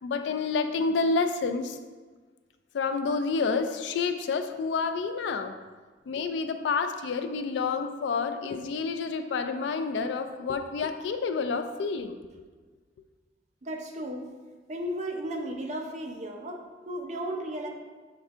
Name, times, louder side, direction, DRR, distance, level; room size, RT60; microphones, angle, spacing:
voice 1, 0.0-1.8 2.7-5.6 6.1-12.2, left 4 dB, 80° left, 8 dB, 0.3 m, -29 dB
voice 2, 13.6-14.3 14.7-17.7, right 1 dB, 40° right, 2 dB, 0.5 m, -34 dB
5.4 x 3.4 x 2.4 m, 1.4 s
head